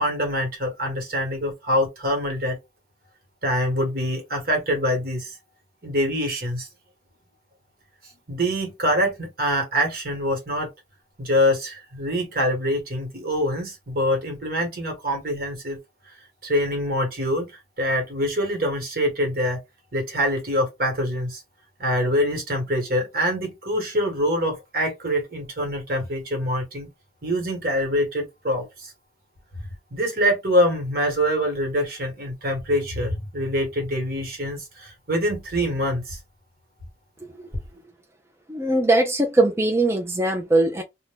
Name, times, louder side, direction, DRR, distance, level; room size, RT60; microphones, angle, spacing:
voice 1, 0.0-2.6 3.4-5.3 5.8-6.7 8.3-10.7 11.2-15.8 16.1-16.2 16.4-19.6 19.9-21.4 21.8-26.9 27.2-28.9 29.9-36.2, equal, 55° right, 1.2 m, -25 dB
voice 2, 38.5-40.8, right 2 dB, 15° right, 0.4 m, -20 dB
2.5 x 2.1 x 3.2 m
head